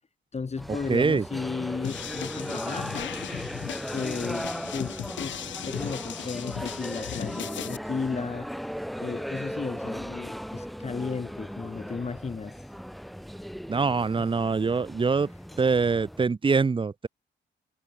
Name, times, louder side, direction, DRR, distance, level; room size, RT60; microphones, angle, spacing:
voice 1, 0.3-3.2 3.9-12.7 14.2-14.3 15.3-15.4, left 4 dB, 35° left, 7.1 m, -35 dB
sound 1, 0.6-16.3, equal, ahead, 4.5 m, -37 dB
voice 2, 0.9-1.2 13.7-15.3 15.6-17.1, right 4 dB, 25° right, 1.1 m, -24 dB
sound 2, 1.8-7.8, left 11 dB, 70° left, 6.8 m, -37 dB
cardioid pair, 90°, 20 cm